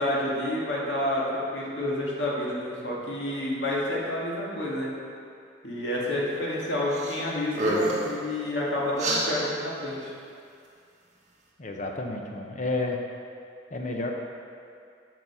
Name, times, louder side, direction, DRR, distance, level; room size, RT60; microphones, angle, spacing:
voice 1, 0.0-4.9 5.6-10.1, left 1 dB, 75° left, -5 dB, 1.8 m, -29 dB
sound 1, 6.9-7.2 7.5-8.1 9.0-9.2, right 1 dB, 40° right, 1.4 m, -27 dB
voice 2, 11.6-13.0 13.7-14.1, left 2 dB, 40° left, 2 dB, 0.8 m, -30 dB
7.1 x 6.0 x 5.4 m, 2.4 s
head